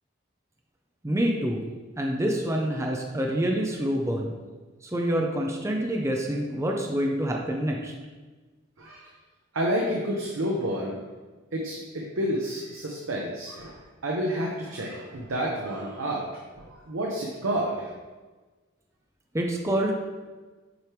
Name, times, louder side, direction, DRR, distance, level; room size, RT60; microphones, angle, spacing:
voice 1, 1.0-1.6 2.0-4.3 4.8-7.9 19.3-19.9, right 1 dB, 15° right, 1 dB, 0.5 m, -27 dB
voice 2, 8.8-9.1 9.5-11.0 11.5-16.3 16.6-17.9, equal, 85° right, -2 dB, 0.9 m, -30 dB
8.0 x 3.4 x 4.5 m, 1.3 s
head